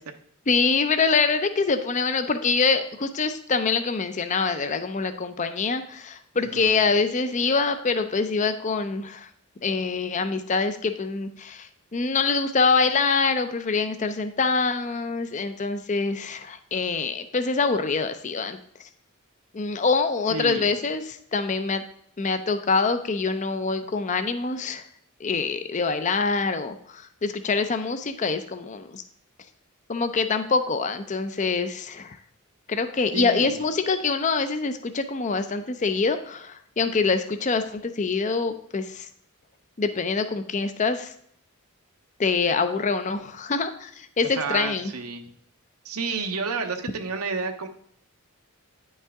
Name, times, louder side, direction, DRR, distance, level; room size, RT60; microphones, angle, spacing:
voice 1, 0.5-9.3 9.6-18.6 19.5-21.8 22.2-24.8 25.2-29.0 29.9-32.2 32.7-39.1 39.8-41.1 42.2-44.9, left 4 dB, 35° left, 9 dB, 0.5 m, -25 dB
voice 2, 6.3-6.8 20.3-20.7 33.1-33.6 44.3-45.2 45.8-47.7, right 4 dB, 85° right, 5 dB, 0.9 m, -30 dB
9.8 x 5.4 x 3.5 m, 0.66 s
head